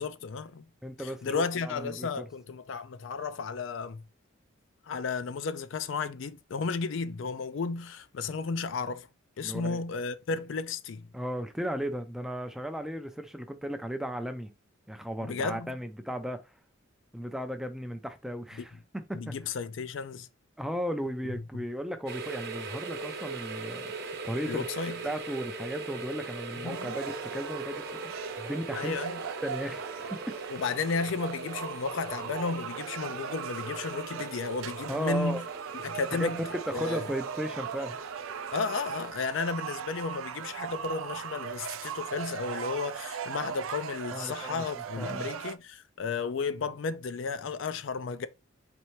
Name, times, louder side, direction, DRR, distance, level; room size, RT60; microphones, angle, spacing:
voice 1, 0.0-0.6 1.0-4.0 4.9-9.1 9.4-11.1 15.2-15.8 19.1-20.3 24.5-25.0 26.6-27.0 28.7-29.3 30.5-35.4 35.8-36.4 36.7-37.1 38.5-48.3, left 4 dB, 65° left, 0.4 m, -33 dB
voice 2, 0.8-2.2 9.4-9.8 11.1-14.5 14.9-16.4 17.1-19.3 20.6-23.9 24.2-29.0 29.4-30.6 34.9-35.4 36.1-38.0 44.1-44.6 45.0-45.3, equal, ahead, 0.4 m, -35 dB
sound 1, 22.1-39.1, right 3 dB, 55° right, 0.8 m, -41 dB
sound 2, 26.6-45.6, right 7 dB, 85° right, 0.4 m, -39 dB
4.3 x 3.3 x 3.1 m
head